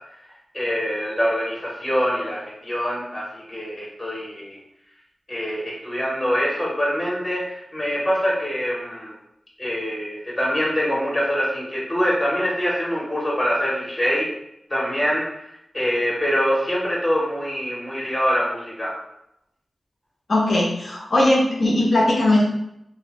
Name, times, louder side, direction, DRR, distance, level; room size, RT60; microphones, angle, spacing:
voice 1, 0.5-4.6 5.3-9.1 9.6-14.3 14.7-15.3 15.7-19.0, equal, 20° left, -4 dB, 0.7 m, -24 dB
voice 2, 20.3-22.4, left 1 dB, 65° left, -5 dB, 0.7 m, -19 dB
2.7 x 2.0 x 2.8 m, 0.78 s
wide cardioid pair, 80°, 0 cm